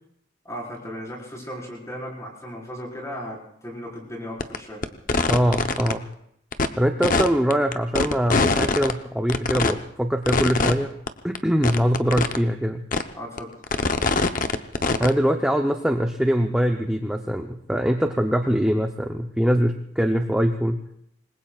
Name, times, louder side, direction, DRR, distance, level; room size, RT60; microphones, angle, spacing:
voice 1, 0.4-4.8 13.1-13.5, equal, 15° left, -3 dB, 4.8 m, -36 dB
sound 1, 4.4-4.6 4.8-5.9 6.5-6.7 7.0-8.9 9.3-9.7 10.3-10.7 11.1-11.2 11.4-11.5 11.6-12.4 12.9-13.0 13.4-15.1, left 3 dB, 45° left, 0.8 m, -22 dB
voice 2, 5.3-6.1 6.8-10.9 11.2-12.9 15.0-20.8, equal, 5° right, 4 dB, 0.6 m, -23 dB
27.0 x 21.0 x 2.4 m, 0.72 s
head